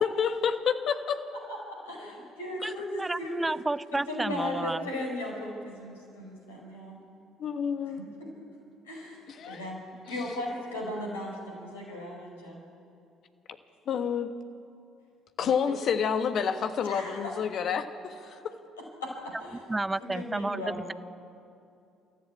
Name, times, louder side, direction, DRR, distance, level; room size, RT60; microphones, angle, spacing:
voice 1, 0.0-1.2 2.6-2.7 7.4-8.0 9.4-9.6 13.9-14.3 15.4-18.5, left 7 dB, 50° left, 8 dB, 1.4 m, -29 dB
voice 2, 1.8-3.6 4.1-7.0 8.0-8.1 8.8-9.8 10.1-12.6 15.4-15.5 16.8-17.3 19.0-19.7 20.0-20.9, left 1 dB, 75° left, -1 dB, 5.5 m, -37 dB
voice 3, 3.0-4.9 19.7-20.9, right 2 dB, 15° right, 19 dB, 0.4 m, -31 dB
29.5 x 14.0 x 8.5 m, 2.5 s
figure-of-eight pair, 50°, 0 cm